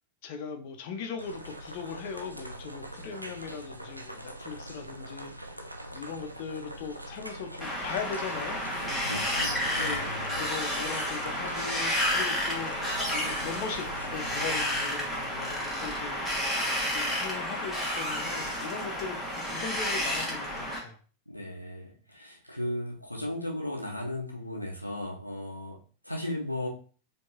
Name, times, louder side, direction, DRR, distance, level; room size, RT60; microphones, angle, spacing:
voice 1, 0.2-5.3 5.9-8.7 9.8-10.1 10.4-16.2 16.9-21.0, left 6 dB, 50° left, 5 dB, 0.6 m, -39 dB
sound 1, 1.2-14.7, right 1 dB, 85° right, 0.4 m, -43 dB
Wind, 7.6-20.8, left 1 dB, ahead, 1.3 m, -31 dB
voice 2, 8.9-10.4 21.3-25.8 26.0-26.7, left 1 dB, 90° left, 0 dB, 0.6 m, -36 dB
4.4 x 2.7 x 2.7 m, 0.40 s
figure-of-eight pair, 90°, 0 cm